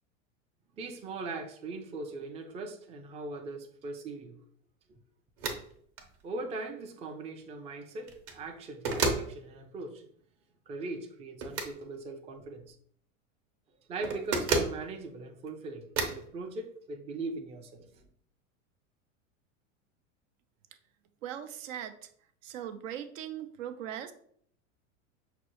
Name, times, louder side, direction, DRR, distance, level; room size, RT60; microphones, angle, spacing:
voice 1, 0.8-4.4 4.9-5.0 6.2-10.0 10.7-12.8 13.8-18.0, right 3 dB, 15° right, 5 dB, 0.4 m, -40 dB
sound 1, 5.4-5.6 6.0-6.1 8.0-8.4 8.8-9.3 11.4-11.7 14.0-14.8 16.0-16.2, right 3 dB, 40° right, 0.8 m, -30 dB
voice 2, 21.2-22.1 22.4-24.1, right 10 dB, 70° right, 9 dB, 0.6 m, -39 dB
5.8 x 2.1 x 3.0 m, 0.63 s
hypercardioid pair, 100°, 40 cm